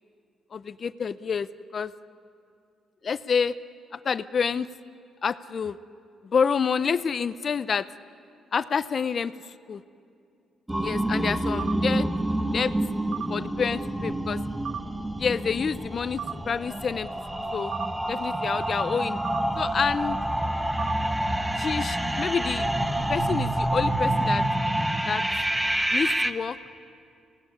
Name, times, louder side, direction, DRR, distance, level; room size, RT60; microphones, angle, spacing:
voice 1, 0.5-1.5 1.7-1.9 3.0-3.5 3.9-4.7 5.2-5.8 6.2-7.9 8.5-9.3 9.7-9.8 10.8-12.1 12.5-12.7 13.3-14.4 15.2-17.1 17.5-17.7 18.1-19.2 19.6-20.2 21.6-22.8 23.1-24.4 25.1-25.2 25.9-26.6, left 6 dB, 45° left, 15 dB, 0.5 m, -28 dB
sound 1, 10.7-26.3, right 1 dB, 10° right, 1.1 m, -27 dB
sound 2, 11.6-11.8 13.1-13.3 14.6-14.8 16.2-16.4 17.7-17.9 19.2-19.4 20.8-21.0, right 8 dB, 65° right, 1.3 m, -34 dB
23.0 x 17.5 x 9.8 m, 2.4 s
cardioid pair, 90°, 0 cm